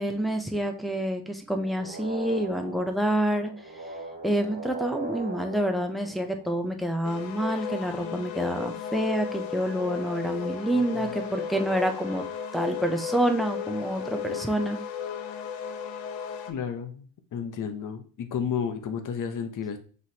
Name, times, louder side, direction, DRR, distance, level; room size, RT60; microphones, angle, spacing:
voice 1, 0.0-3.5 4.2-12.2 12.5-14.8, right 1 dB, ahead, 4 dB, 0.3 m, -27 dB
sound 1, 1.6-6.9 11.2-12.9, right 3 dB, 25° right, 2.3 m, -41 dB
sound 2, 7.0-16.5, left 7 dB, 85° left, 0.8 m, -35 dB
voice 2, 10.7-11.2 16.5-19.8, left 7 dB, 45° left, 6 dB, 0.7 m, -32 dB
5.7 x 3.2 x 2.7 m, 0.41 s
cardioid pair, 135°, 45 cm